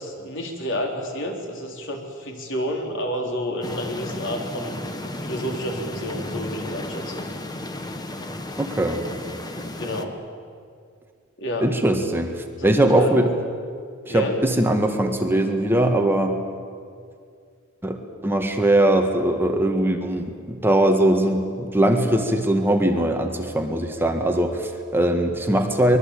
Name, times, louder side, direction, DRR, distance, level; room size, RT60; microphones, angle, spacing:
voice 1, 0.0-4.8 5.2-7.2 9.6-10.2 11.4-11.7 12.6-13.1 14.1-14.4, equal, 65° left, 2 dB, 4.0 m, -30 dB
sound 1, 3.6-10.0, left 1 dB, 20° left, 1.4 m, -33 dB
voice 2, 8.6-9.0 11.6-12.3 12.6-13.3 14.1-16.3 17.8-18.0 18.2-26.0, right 1 dB, 10° right, 4 dB, 1.8 m, -20 dB
24.0 x 22.0 x 8.6 m, 2.2 s
head